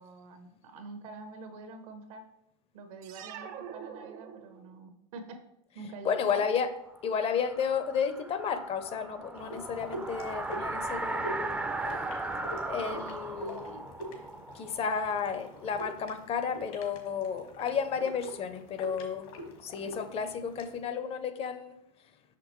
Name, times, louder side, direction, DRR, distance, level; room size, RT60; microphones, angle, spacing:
voice 1, 0.0-2.2 2.7-5.4 5.7-6.4, right 3 dB, 75° right, 7 dB, 1.1 m, -46 dB
sound 1, 3.0-4.9, right 8 dB, 50° right, 0.6 m, -44 dB
voice 2, 6.0-6.7 7.0-11.6 12.6-13.8 14.5-19.3 19.6-21.8, left 6 dB, 35° left, 10 dB, 0.6 m, -32 dB
sound 2, 7.0-15.7, right 2 dB, 10° right, 0.4 m, -37 dB
sound 3, 9.4-20.8, equal, 75° left, 1.6 m, -45 dB
6.0 x 5.9 x 3.0 m, 0.82 s
supercardioid pair, 120°, 18 cm